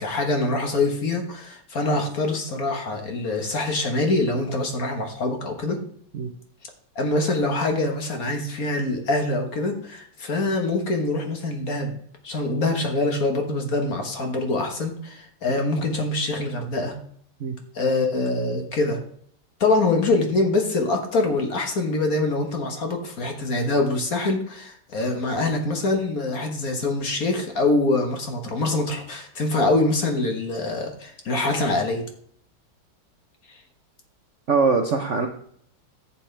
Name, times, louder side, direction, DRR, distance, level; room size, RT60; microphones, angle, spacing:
voice 1, 0.0-5.8 6.9-12.0 12.2-16.9 17.7-19.0 19.6-32.0 33.5-33.6, left 2 dB, 45° left, 3 dB, 1.6 m, -24 dB
voice 2, 34.5-35.3, right 4 dB, 55° right, 4 dB, 0.8 m, -22 dB
10.5 x 8.3 x 3.3 m, 0.62 s
omnidirectional pair, 2.3 m